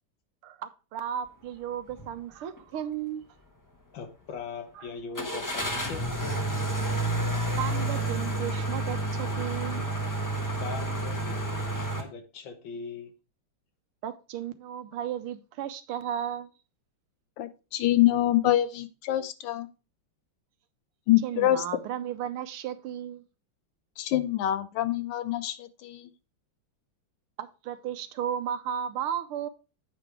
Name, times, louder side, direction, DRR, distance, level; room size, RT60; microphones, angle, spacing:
voice 1, 0.4-3.3 4.8-4.9 5.6-5.8 7.6-9.9 14.0-16.5 21.2-23.2 27.4-29.5, right 10 dB, 85° right, 1.6 m, -34 dB
sound 1, 1.9-2.1 2.6-2.7 5.1-12.0, right 1 dB, 15° left, 0.7 m, -30 dB
voice 2, 3.9-6.8 10.6-13.1, left 5 dB, 65° left, 1.7 m, -40 dB
voice 3, 17.4-19.7 21.1-21.6 24.0-26.1, left 13 dB, 85° left, 1.6 m, -25 dB
8.2 x 5.2 x 4.5 m
omnidirectional pair, 2.4 m